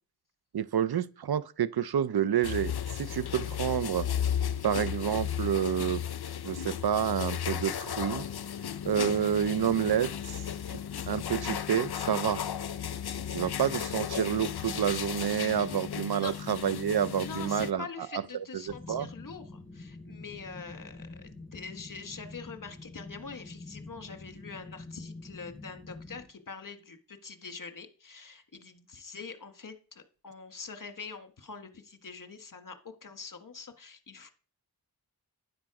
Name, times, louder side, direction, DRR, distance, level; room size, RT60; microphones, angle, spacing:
voice 1, 0.5-4.1 4.6-6.0 6.4-8.2 8.9-10.4 11.1-12.4 13.3-17.9 18.1-18.6 18.9-19.1, right 9 dB, 80° right, 0.6 m, -29 dB
sound 1, 2.4-17.7, left 9 dB, 85° left, 0.6 m, -35 dB
voice 2, 17.2-34.3, left 5 dB, 55° left, 1.5 m, -44 dB
sound 2, 18.7-26.2, left 2 dB, 30° left, 3.4 m, -46 dB
11.5 x 10.0 x 4.8 m
wide cardioid pair, 90°, 38 cm